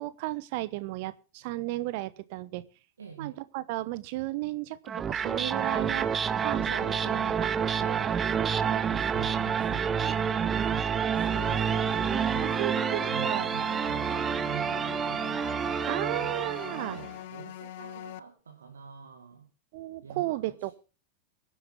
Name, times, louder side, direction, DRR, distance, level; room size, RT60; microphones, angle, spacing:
voice 1, 0.0-2.6 3.2-6.1 6.4-8.1 10.0-10.6 12.4-13.5 15.9-17.0 19.7-20.8, right 18 dB, 50° right, 0.9 m, -34 dB
voice 2, 3.0-3.4 5.8-6.0 6.6-7.5 8.7-12.0 12.3-15.3 16.1-16.3 16.7-19.5 20.0-20.8, right 6 dB, 70° right, 1.9 m, -45 dB
sound 1, 4.9-17.1, right 7 dB, 20° right, 0.6 m, -28 dB
sound 2, 11.2-18.2, left 13 dB, 50° left, 0.6 m, -42 dB
23.0 x 8.5 x 3.6 m
figure-of-eight pair, 90°, 0 cm